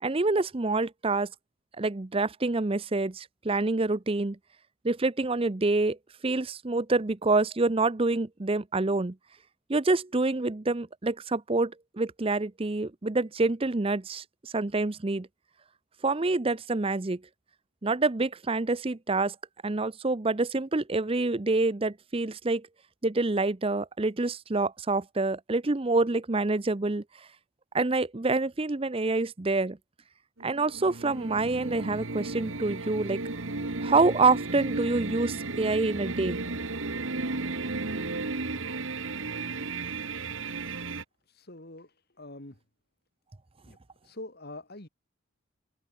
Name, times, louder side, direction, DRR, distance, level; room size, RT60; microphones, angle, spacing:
voice 1, 0.0-1.3 1.8-4.4 4.8-6.0 6.2-9.2 9.7-15.3 16.0-17.2 17.8-19.4 19.6-22.7 23.0-27.0 27.7-29.8 30.4-33.2 33.8-36.4, right 3 dB, 25° right, 0.6 m, -27 dB
sound 1, 30.4-41.0, right 3 dB, 65° right, 1.7 m, -34 dB
voice 2, 41.3-42.6 43.7-43.8 44.0-44.9, left 2 dB, 45° left, 2.9 m, -44 dB
head